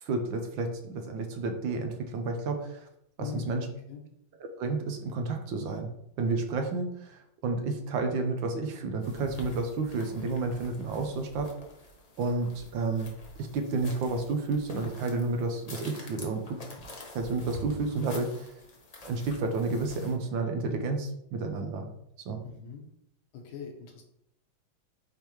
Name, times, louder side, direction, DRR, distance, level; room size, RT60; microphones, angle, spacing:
voice 1, 0.0-2.9 3.2-3.7 4.4-5.9 6.2-11.5 12.2-13.1 13.4-16.6 17.1-18.5 19.0-21.9 22.2-22.4, right 3 dB, 75° right, 5 dB, 1.4 m, -31 dB
voice 2, 3.2-4.0 22.4-22.9 23.3-24.0, left 6 dB, 85° left, 1 dB, 2.0 m, -41 dB
sound 1, 9.0-20.1, equal, 45° left, 0.5 m, -47 dB
9.0 x 3.5 x 3.0 m, 0.76 s
omnidirectional pair, 2.3 m